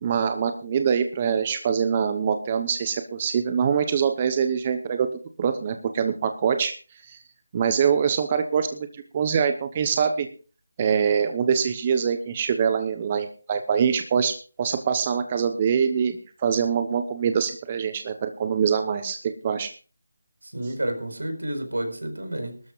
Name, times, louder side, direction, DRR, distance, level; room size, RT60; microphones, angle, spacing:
voice 1, 0.0-5.1 5.4-6.7 7.0-7.2 7.5-8.9 9.1-10.3 10.8-19.2 19.4-19.7, right 7 dB, 25° right, 8 dB, 0.9 m, -24 dB
voice 2, 20.4-22.6, right 1 dB, 85° right, 5 dB, 4.7 m, -30 dB
20.5 x 13.0 x 2.5 m, 0.37 s
figure-of-eight pair, 165°, 0 cm